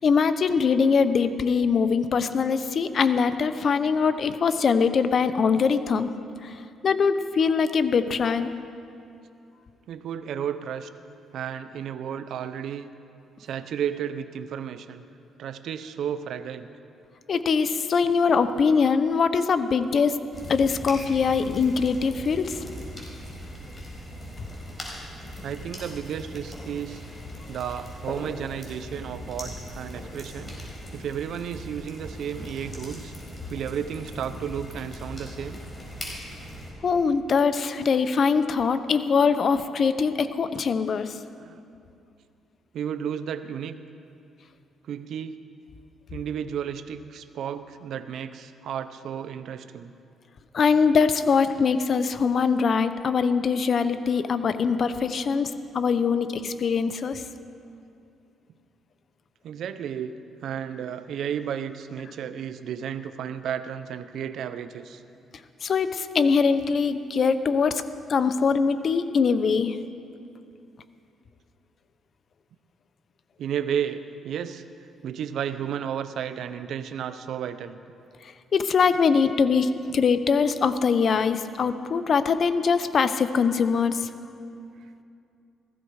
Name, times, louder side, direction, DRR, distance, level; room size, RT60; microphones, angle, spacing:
voice 1, 0.0-6.1 6.4-6.5 6.8-8.5 17.3-20.2 20.5-22.6 36.8-41.1 50.5-57.2 65.6-67.8 68.1-69.8 78.5-84.1, left 5 dB, 50° left, 11 dB, 0.8 m, -22 dB
voice 2, 9.9-10.9 11.3-12.9 13.4-15.1 15.4-16.7 25.4-27.0 27.5-30.6 30.9-33.1 33.5-35.6 41.4-41.6 42.7-43.8 44.8-45.4 46.1-49.9 59.4-60.2 60.4-65.0 73.4-74.6 75.0-77.8, right 8 dB, 70° right, 11 dB, 0.7 m, -33 dB
sound 1, 20.3-36.7, equal, 20° left, 4.5 m, -39 dB
16.0 x 15.0 x 4.8 m, 2.5 s
cardioid pair, 90°, 0 cm